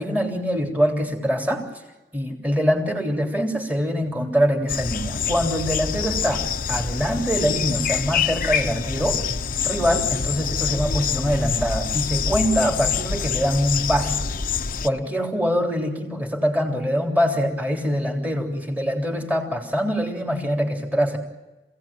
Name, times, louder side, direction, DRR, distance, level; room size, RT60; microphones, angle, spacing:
voice 1, 0.0-1.7 2.1-9.2 9.6-14.2 14.8-21.2, equal, 10° right, 2 dB, 3.5 m, -24 dB
sound 1, 4.7-14.9, left 6 dB, 50° left, 0.9 m, -26 dB
27.5 x 17.5 x 8.9 m, 1.1 s
head